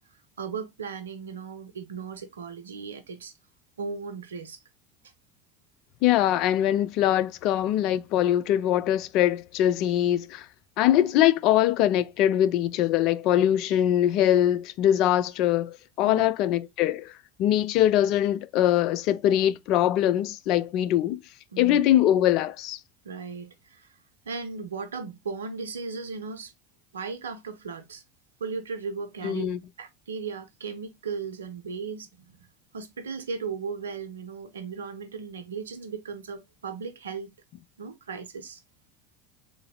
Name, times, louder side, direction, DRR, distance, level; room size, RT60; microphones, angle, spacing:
voice 1, 0.4-3.3 3.8-4.6 16.0-16.2 21.5-21.8 23.0-24.0 24.3-26.5 26.9-28.0 28.4-29.5 29.8-32.5 32.7-37.3 37.8-38.6, right 5 dB, 85° right, 0.5 m, -36 dB
voice 2, 6.0-10.5 10.8-17.1 17.4-21.2 21.6-22.8 29.2-29.6, left 12 dB, 55° left, 0.3 m, -22 dB
3.8 x 2.6 x 2.8 m
hypercardioid pair, 75°, 0 cm